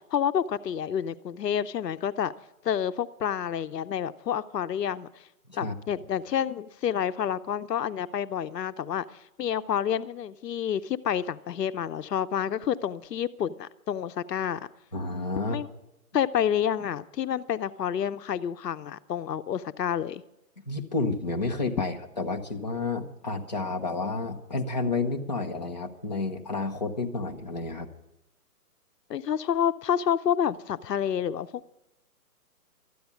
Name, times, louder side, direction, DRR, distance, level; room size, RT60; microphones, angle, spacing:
voice 1, 0.0-2.3 2.6-5.1 5.6-14.6 15.5-15.7 16.1-20.2 29.1-31.7, left 9 dB, 80° left, 13 dB, 0.8 m, -29 dB
voice 2, 14.9-15.6 20.6-27.9, left 3 dB, 30° left, 1 dB, 0.6 m, -30 dB
13.5 x 9.4 x 8.3 m, 0.89 s
hypercardioid pair, 175°, 48 cm